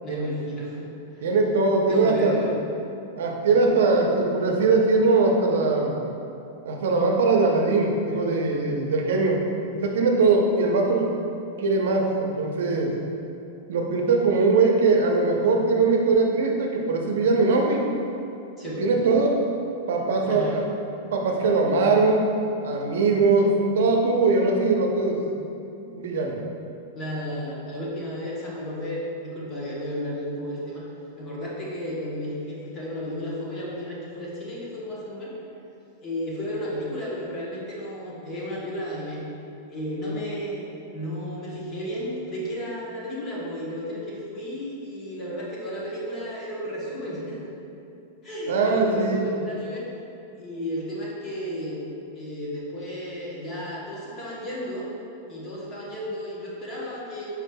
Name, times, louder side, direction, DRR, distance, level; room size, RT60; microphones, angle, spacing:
voice 1, 0.0-1.3 1.9-2.5 18.6-18.9 20.2-20.6 26.9-30.8 31.2-35.3 36.0-39.2 39.7-47.5 48.2-49.8 50.3-51.8 52.1-54.9 55.3-57.3, equal, 25° left, -5 dB, 1.0 m, -33 dB
voice 2, 1.2-2.5 3.2-6.0 6.6-9.4 9.7-11.1 11.6-13.0 13.7-17.9 18.6-19.4 19.9-20.6 21.1-22.3 22.6-25.2 25.9-26.4 48.5-49.2, right 3 dB, 80° right, 1 dB, 0.6 m, -21 dB
5.0 x 4.7 x 2.2 m, 2.7 s
supercardioid pair, 155°, 0 cm